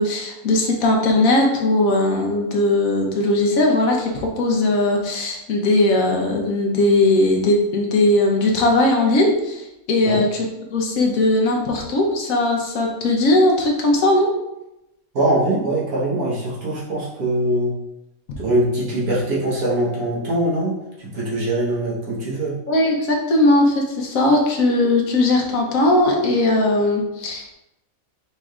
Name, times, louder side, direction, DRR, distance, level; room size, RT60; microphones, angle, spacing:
voice 1, 0.0-14.3 22.7-27.5, left 2 dB, 75° left, 0 dB, 1.1 m, -19 dB
voice 2, 15.1-17.7 18.4-20.7 21.1-22.6, right 1 dB, 80° right, -6 dB, 1.7 m, -22 dB
5.1 x 3.2 x 2.4 m, 0.90 s
omnidirectional pair, 1.5 m